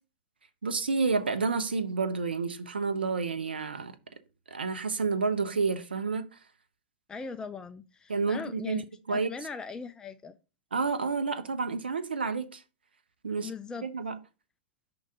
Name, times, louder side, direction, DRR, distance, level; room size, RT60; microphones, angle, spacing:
voice 1, 0.6-3.9 4.5-6.3 8.1-8.8 9.1-9.3 10.7-12.6 13.2-13.5 13.8-14.2, right 4 dB, 90° right, 0.7 m, -29 dB
voice 2, 7.1-10.4 13.4-13.9, left 5 dB, 15° left, 0.4 m, -40 dB
5.5 x 3.8 x 4.7 m
hypercardioid pair, 110°, 5 cm